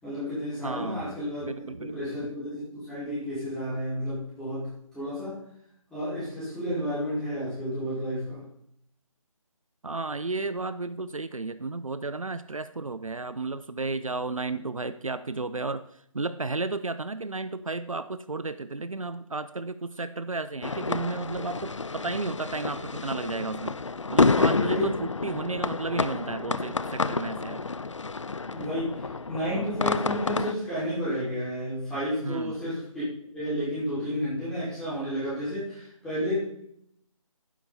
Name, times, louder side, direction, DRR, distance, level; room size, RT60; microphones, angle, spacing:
voice 1, 0.0-5.4 5.9-8.4 24.6-24.9 28.5-33.0 33.3-36.6, equal, 5° left, -11 dB, 5.4 m, -31 dB
voice 2, 0.6-1.1 1.4-2.1 9.8-23.8 24.1-27.6 32.2-32.5, right 3 dB, 70° right, 13 dB, 0.8 m, -33 dB
sound 1, 20.6-30.5, left 4 dB, 60° left, 0.6 m, -29 dB
12.0 x 10.0 x 4.2 m, 0.69 s
figure-of-eight pair, 155°, 18 cm